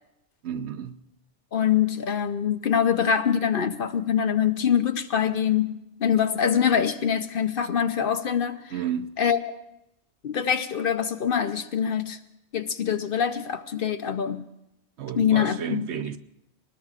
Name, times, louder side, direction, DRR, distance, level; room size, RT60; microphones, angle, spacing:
voice 1, 0.4-1.0 8.7-9.2 15.0-16.2, right 8 dB, 70° right, 1.0 m, -32 dB
voice 2, 1.5-8.6 9.2-9.4 10.2-12.2 12.5-14.5 15.1-15.9, left 8 dB, 55° left, 0.8 m, -24 dB
24.5 x 20.0 x 2.4 m
omnidirectional pair, 1.2 m